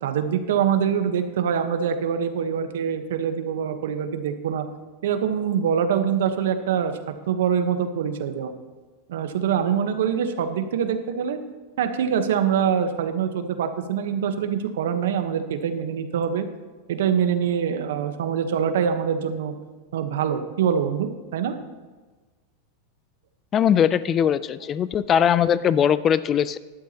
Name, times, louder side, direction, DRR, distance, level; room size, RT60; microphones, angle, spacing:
voice 1, 0.0-4.6 5.0-7.0 7.3-8.5 9.1-11.4 11.8-16.4 16.9-19.5 19.9-21.5, right 8 dB, 85° right, 8 dB, 1.1 m, -24 dB
voice 2, 23.5-26.6, left 9 dB, 25° left, 16 dB, 0.3 m, -20 dB
12.5 x 11.5 x 2.9 m, 1.3 s
supercardioid pair, 155°, 0 cm